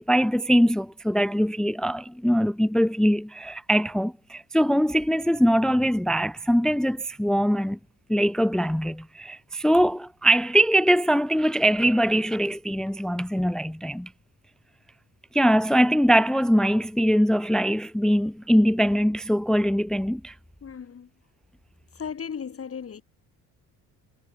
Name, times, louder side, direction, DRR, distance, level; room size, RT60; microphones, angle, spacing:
voice 1, 0.0-7.8 8.1-14.1 15.3-20.3, equal, ahead, 0.7 m, -22 dB
voice 2, 20.6-21.1 21.9-23.0, left 7 dB, 40° left, 4.7 m, -36 dB
cardioid pair, 85°, 35 cm